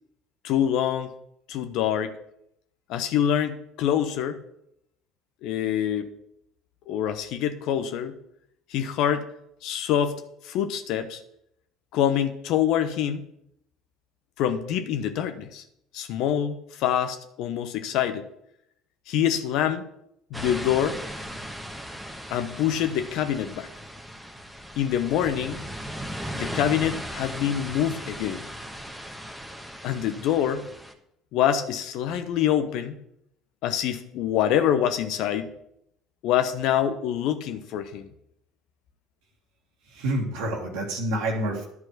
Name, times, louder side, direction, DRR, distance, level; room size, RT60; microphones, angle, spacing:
voice 1, 0.4-1.1 1.5-2.2 2.9-4.4 5.4-6.1 6.9-8.1 8.7-9.3 9.6-10.2 10.4-11.2 11.9-13.3 14.4-15.6 15.9-18.3 19.1-19.8 20.3-21.0 22.3-23.7 24.8-25.6 26.3-28.4 29.8-30.7 31.3-33.0 33.6-35.5 36.2-38.1, left 10 dB, 60° left, 9 dB, 0.9 m, -25 dB
sound 1, 20.3-30.9, equal, ahead, 1.3 m, -37 dB
voice 2, 39.9-41.7, right 1 dB, 70° right, -1 dB, 1.7 m, -28 dB
11.0 x 4.7 x 7.5 m, 0.76 s
hypercardioid pair, 60°, 0 cm